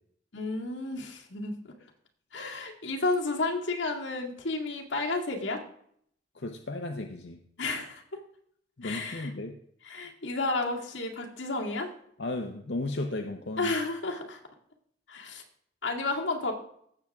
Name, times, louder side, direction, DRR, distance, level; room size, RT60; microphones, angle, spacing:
voice 1, 0.3-1.6 2.3-5.6 7.6-8.0 8.8-9.3 9.8-11.9 13.6-14.4 15.1-15.4 15.8-16.5, left 3 dB, 90° left, 0 dB, 2.1 m, -31 dB
voice 2, 6.3-7.4 8.8-9.6 12.2-13.7, left 2 dB, 70° left, 3 dB, 0.8 m, -34 dB
16.5 x 7.3 x 3.6 m, 0.67 s
head